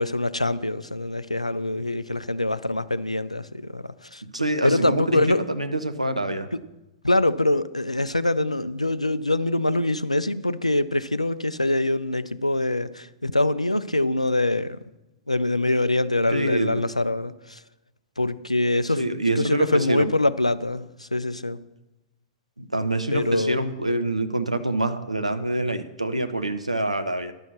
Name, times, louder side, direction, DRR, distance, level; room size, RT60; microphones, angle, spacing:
voice 1, 0.0-4.2 4.6-5.5 7.0-14.8 15.3-17.6 18.2-21.6 23.1-23.6, left 2 dB, 90° left, 0.4 m, -24 dB
voice 2, 4.2-6.5 16.3-16.9 19.0-20.1 22.6-27.3, right 1 dB, 85° right, 0.7 m, -26 dB
10.5 x 6.3 x 6.8 m
figure-of-eight pair, 100°, 3 cm